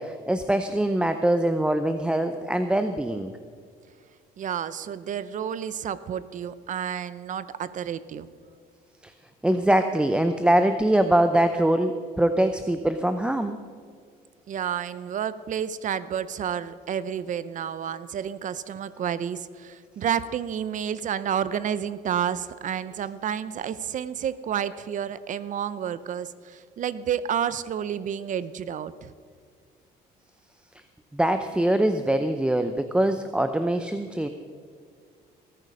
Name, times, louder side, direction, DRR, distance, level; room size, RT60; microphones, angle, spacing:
voice 1, 0.0-3.3 9.0-9.1 9.4-13.6 30.7-30.8 31.1-34.3, right 1 dB, 5° right, 8 dB, 0.6 m, -23 dB
voice 2, 4.4-8.3 14.5-29.1, right 9 dB, 50° right, 15 dB, 0.6 m, -30 dB
19.0 x 9.3 x 5.5 m, 2.1 s
cardioid pair, 110°, 17 cm